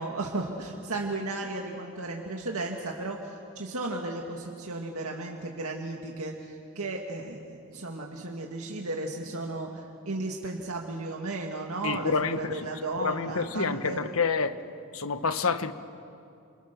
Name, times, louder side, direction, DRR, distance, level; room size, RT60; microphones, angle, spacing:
voice 1, 0.0-14.0, right 2 dB, 85° right, 1 dB, 2.0 m, -34 dB
voice 2, 11.8-12.7 13.0-14.5 14.9-15.7, left 4 dB, 75° left, 10 dB, 1.2 m, -28 dB
29.0 x 28.0 x 6.9 m, 2.5 s
head